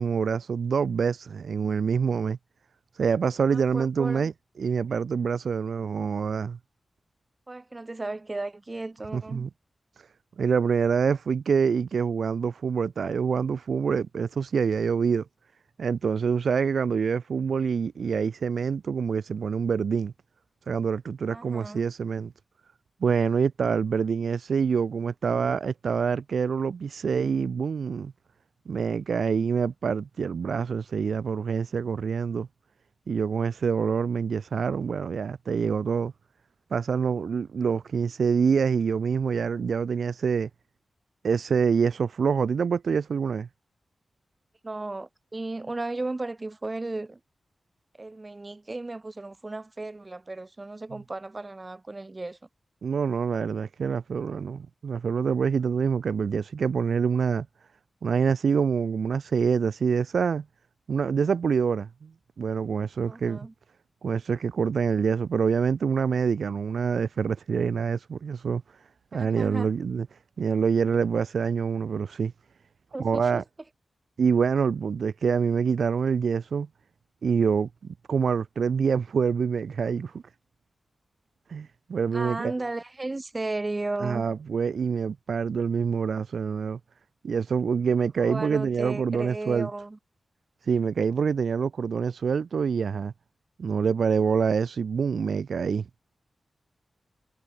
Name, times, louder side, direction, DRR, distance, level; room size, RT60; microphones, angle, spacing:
voice 1, 0.0-2.4 3.0-4.3 4.6-6.6 9.1-9.5 10.4-15.2 15.8-20.1 20.7-22.3 23.0-28.1 28.6-32.5 33.1-36.1 36.7-40.5 41.2-43.5 52.8-57.5 58.0-60.4 60.9-62.1 62.4-63.4 64.0-68.6 69.1-70.1 70.4-72.3 73.0-73.4 74.2-76.7 77.2-80.2 81.5-82.5 84.0-86.8 87.2-89.7 90.7-93.1 93.6-95.9, right 6 dB, 80° right, 3.1 m, -26 dB
voice 2, 3.5-4.3 7.5-9.5 21.3-21.9 44.6-47.2 48.0-52.4 63.1-63.5 69.1-69.7 72.9-73.4 82.1-84.2 88.2-90.0, right 2 dB, 25° right, 7.3 m, -35 dB
wide cardioid pair, 130°, 0 cm